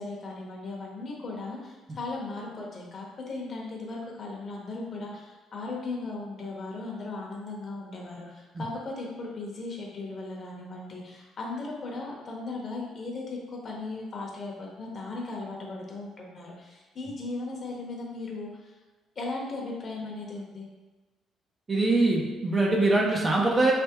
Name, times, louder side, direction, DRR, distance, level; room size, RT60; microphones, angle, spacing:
voice 1, 0.0-18.7 19.2-20.7, left 3 dB, 35° left, -2 dB, 0.9 m, -37 dB
voice 2, 21.7-23.7, right 2 dB, 20° right, -1 dB, 0.5 m, -23 dB
4.3 x 3.3 x 2.9 m, 1.2 s
cardioid pair, 145°, 0 cm